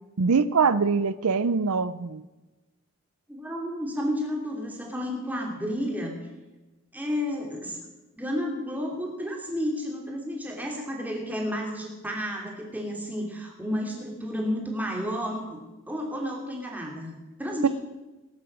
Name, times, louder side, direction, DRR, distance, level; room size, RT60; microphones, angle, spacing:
voice 1, 0.2-2.2 17.6-17.7, right 5 dB, 85° right, 15 dB, 0.6 m, -23 dB
voice 2, 3.3-6.2 6.9-7.8 8.2-15.6 15.9-17.7, equal, 5° right, 0 dB, 3.0 m, -31 dB
19.5 x 11.0 x 6.1 m, 1.1 s
head